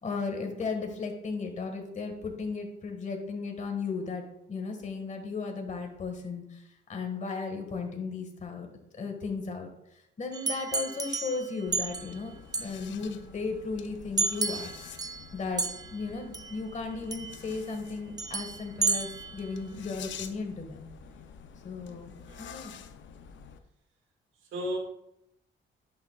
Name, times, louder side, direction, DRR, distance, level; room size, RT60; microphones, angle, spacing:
voice 1, 0.0-6.6 6.9-8.7 9.0-9.7 10.2-12.3 12.6-14.7 15.3-15.6 15.9-20.9 21.6-22.1 22.4-22.8, left 4 dB, 40° left, 3 dB, 1.6 m, -35 dB
sound 1, 10.3-12.2 12.5-12.7 14.2-15.3 15.6-16.0 16.3-16.6 17.1-17.6 18.2-19.5, right 3 dB, 20° right, 0.4 m, -32 dB
sound 2, 11.7-23.6, left 7 dB, 70° left, 0.6 m, -48 dB
voice 2, 21.9-22.6 24.5-24.8, equal, 80° right, 1 dB, 2.0 m, -36 dB
10.5 x 6.9 x 2.4 m, 0.80 s
cardioid pair, 90°, 20 cm